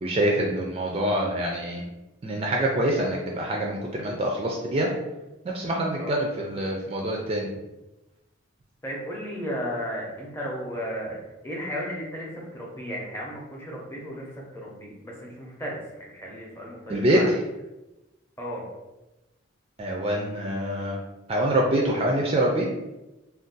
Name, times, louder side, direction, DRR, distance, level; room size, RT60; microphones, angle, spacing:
voice 1, 0.0-1.8 2.2-4.9 5.4-7.5 16.9-17.2 19.8-21.0 21.3-22.7, right 1 dB, 30° right, -1 dB, 0.3 m, -25 dB
voice 2, 8.8-17.4 18.4-18.7, equal, 10° left, -3 dB, 0.6 m, -35 dB
2.5 x 2.2 x 3.8 m, 1.0 s
head